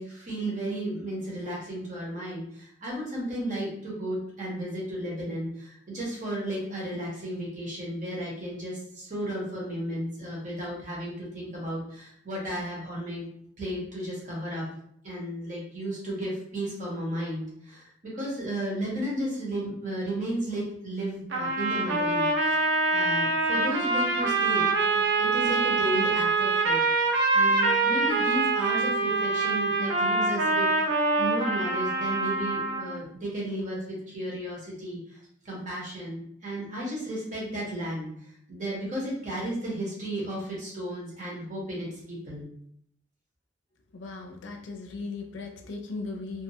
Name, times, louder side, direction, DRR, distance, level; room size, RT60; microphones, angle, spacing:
voice 1, 0.0-13.3 13.6-14.7 15.0-22.6 22.9-30.9 31.2-35.2 35.4-42.4, right 1 dB, 45° right, -4 dB, 1.0 m, -34 dB
sound 1, 21.3-33.0, right 3 dB, 75° right, 0.5 m, -25 dB
voice 2, 43.9-46.4, left 3 dB, 85° left, 3 dB, 0.4 m, -37 dB
2.5 x 2.3 x 2.7 m, 0.69 s
head